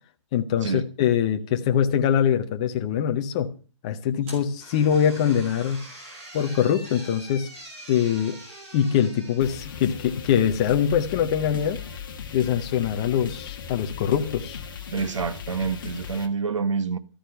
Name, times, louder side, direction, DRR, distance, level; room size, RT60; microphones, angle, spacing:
voice 1, 0.3-3.5 3.8-5.8 6.3-7.5 7.9-8.4 8.7-11.8 12.3-14.6, left 9 dB, 15° left, 0.6 m, -23 dB
sound 1, 4.2-10.4, right 1 dB, 25° right, 3.8 m, -44 dB
sound 2, 9.4-16.3, left 7 dB, 40° left, 1.6 m, -37 dB
voice 2, 14.9-17.0, right 5 dB, 75° right, 1.3 m, -27 dB
13.0 x 10.0 x 6.4 m
hypercardioid pair, 175°, 16 cm